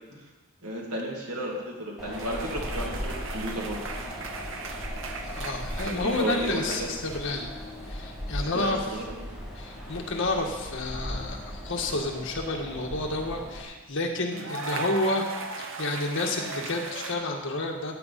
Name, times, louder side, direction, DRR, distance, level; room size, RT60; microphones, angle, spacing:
voice 1, 0.6-3.8 5.8-6.9 8.4-9.4 14.3-14.4, right 1 dB, 85° right, -1 dB, 2.8 m, -33 dB
Wind, 2.0-13.6, equal, ahead, 2.4 m, -38 dB
sound 1, 2.1-7.6 7.9-8.3 10.2-10.4 14.3-17.1, right 4 dB, 65° right, 1.1 m, -38 dB
voice 2, 5.2-7.5 7.8-8.8 9.6-15.3 15.8-17.9, left 2 dB, 60° left, 1 dB, 1.8 m, -30 dB
14.5 x 9.3 x 4.3 m, 1.2 s
head